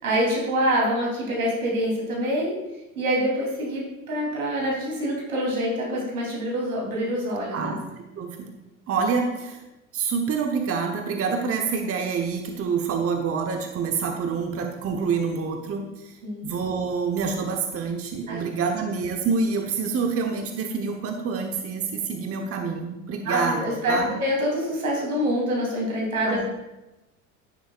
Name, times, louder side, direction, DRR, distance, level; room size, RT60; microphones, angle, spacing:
voice 1, 0.0-2.5 3.0-7.7 16.2-16.5 18.3-18.4 23.3-26.5, equal, 85° right, -3 dB, 3.6 m, -26 dB
voice 2, 8.2-8.5 8.9-9.6 9.9-24.2 26.3-26.5, right 5 dB, 35° right, 3 dB, 1.1 m, -27 dB
10.5 x 10.0 x 2.5 m, 1.0 s
hypercardioid pair, 75°, 42 cm